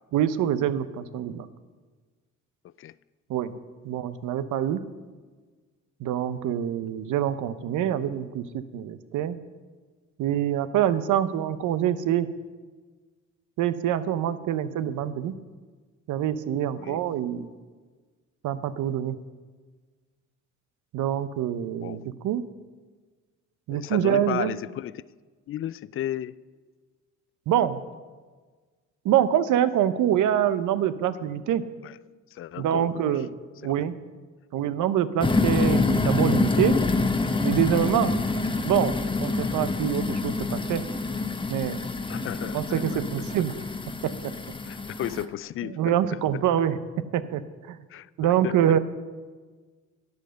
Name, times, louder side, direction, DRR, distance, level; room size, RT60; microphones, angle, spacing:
voice 1, 0.1-1.5 3.3-3.6 3.8-4.8 6.0-9.4 10.2-12.3 13.6-15.3 16.1-17.5 18.4-19.2 20.9-22.5 23.7-24.5 27.5-27.8 29.0-31.6 32.6-33.4 33.6-34.0 34.5-36.8 37.4-38.1 38.6-40.8 41.5-41.8 42.5-43.5 44.0-44.3 45.7-46.8 47.1-47.8 48.2-48.8, right 10 dB, 80° right, 0.7 m, -25 dB
voice 2, 23.7-25.0 25.5-26.4 31.8-31.9 32.3-33.2 33.6-33.7 42.1-43.0 44.6-46.2 47.9-48.8, left 12 dB, 45° left, 0.4 m, -34 dB
sound 1, 35.2-45.2, left 3 dB, 15° left, 0.8 m, -26 dB
12.0 x 8.0 x 6.4 m
cardioid pair, 90°, 30 cm